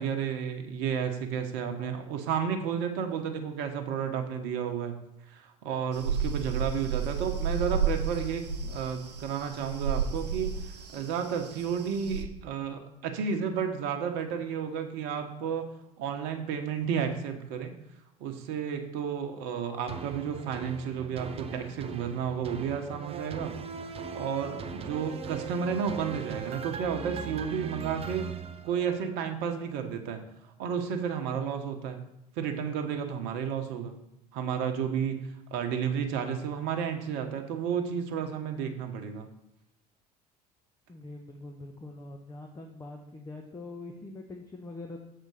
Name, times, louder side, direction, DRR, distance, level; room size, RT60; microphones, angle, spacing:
voice 1, 0.0-5.0 5.3-10.6 10.9-15.7 16.0-17.7 18.2-23.5 23.8-28.3 28.6-30.2 30.6-32.0 32.4-34.0 34.3-35.2 35.5-39.3, right 7 dB, 60° right, 6 dB, 1.1 m, -32 dB
sound 1, 5.9-12.2, right 6 dB, 85° right, 0.7 m, -32 dB
sound 2, 19.9-29.3 29.7-29.8, right 5 dB, 30° right, 0.7 m, -40 dB
voice 2, 40.9-45.0, left 2 dB, 20° left, 3 dB, 1.0 m, -43 dB
6.7 x 4.3 x 6.3 m, 0.83 s
figure-of-eight pair, 70°, 20 cm